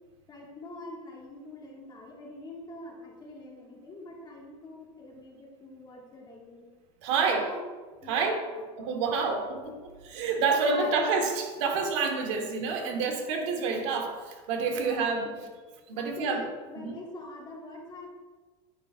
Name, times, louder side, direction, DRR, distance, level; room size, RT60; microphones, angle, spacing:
voice 1, 0.3-6.6 7.1-7.6 8.0-8.7 9.2-9.4 10.1-11.2 12.7-13.1 14.7-15.5 16.0-18.1, left 2 dB, 30° left, -2 dB, 1.7 m, -45 dB
voice 2, 7.0-7.5 8.1-8.4 8.8-15.3 15.9-16.4 16.8-17.0, right 4 dB, 80° right, 3 dB, 1.3 m, -28 dB
10.0 x 5.5 x 2.5 m, 1.4 s
supercardioid pair, 135°, 15 cm